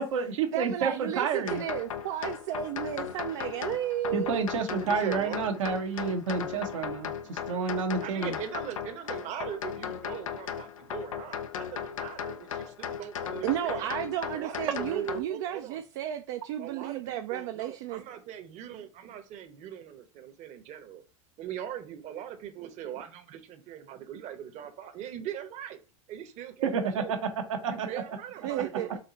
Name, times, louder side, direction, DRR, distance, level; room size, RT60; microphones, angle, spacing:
voice 1, 0.0-1.6 4.1-8.4 14.6-14.7 26.6-27.0 27.5-27.9, right 5 dB, 80° right, 1.0 m, -29 dB
voice 2, 0.5-4.4 13.4-18.0 28.4-29.0, right 11 dB, 60° right, 0.5 m, -33 dB
sound 1, 1.5-15.2, left 8 dB, 85° left, 0.5 m, -37 dB
voice 3, 4.8-5.5 8.0-13.9 14.3-15.8 16.6-21.0 21.4-25.8 26.1-27.2 27.7-29.0, right 10 dB, 45° right, 0.9 m, -40 dB
4.3 x 2.7 x 4.0 m
hypercardioid pair, 95°, 17 cm